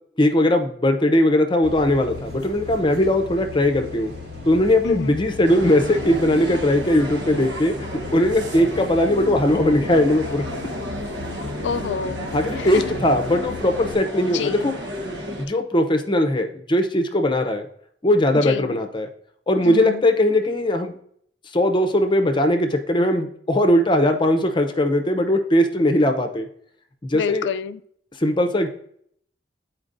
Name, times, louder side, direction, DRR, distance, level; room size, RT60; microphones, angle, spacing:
voice 1, 0.2-4.1 4.4-10.4 12.3-14.7 15.5-17.7 18.0-19.1 19.5-20.9 21.5-26.5 27.0-27.5 28.2-28.7, left 1 dB, 25° left, 0.7 m, -19 dB
sound 1, 1.6-13.9, left 3 dB, 60° right, 1.7 m, -37 dB
voice 2, 4.8-5.2 11.6-12.9 14.3-14.7 18.3-18.8 19.7-20.0 27.1-27.8, left 6 dB, 85° left, 0.4 m, -28 dB
sound 2, 5.4-15.4, equal, 75° right, 1.3 m, -32 dB
11.5 x 4.5 x 2.6 m
head